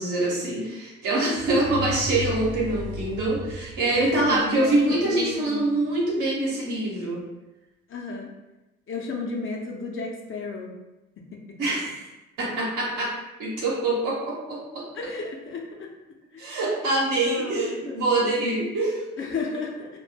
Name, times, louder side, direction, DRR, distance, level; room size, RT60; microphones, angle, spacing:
voice 1, 0.0-7.2 11.6-12.0 12.4-13.1 13.4-14.8 16.4-19.0, right 2 dB, 80° right, -5 dB, 0.9 m, -25 dB
sound 1, 1.4-5.3, left 1 dB, 50° right, 0.8 m, -35 dB
voice 2, 3.9-5.7 7.9-8.3 8.9-10.7 11.3-11.6 14.9-15.9 16.3-16.4 17.3-17.9 19.2-20.0, left 3 dB, 45° left, 0 dB, 0.6 m, -33 dB
2.2 x 2.0 x 3.3 m, 1.0 s
supercardioid pair, 55°, 30 cm